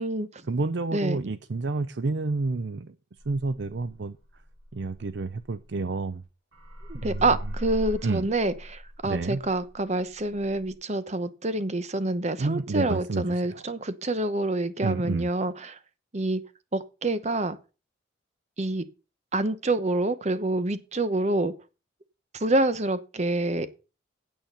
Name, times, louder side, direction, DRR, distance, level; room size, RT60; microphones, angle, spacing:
voice 1, 0.5-3.0 3.3-4.2 4.7-6.2 7.0-7.4 8.0-8.3 9.0-9.4 12.4-13.6 14.8-15.3, right 3 dB, 60° right, 0.5 m, -29 dB
sound 1, 3.2-6.2 6.5-10.7, equal, 90° right, 6.1 m, -40 dB
voice 2, 6.9-15.8 16.1-16.4 16.7-17.6 18.6-18.8 19.3-21.5 22.3-23.7, right 2 dB, 35° right, 0.9 m, -27 dB
9.2 x 8.7 x 5.6 m
head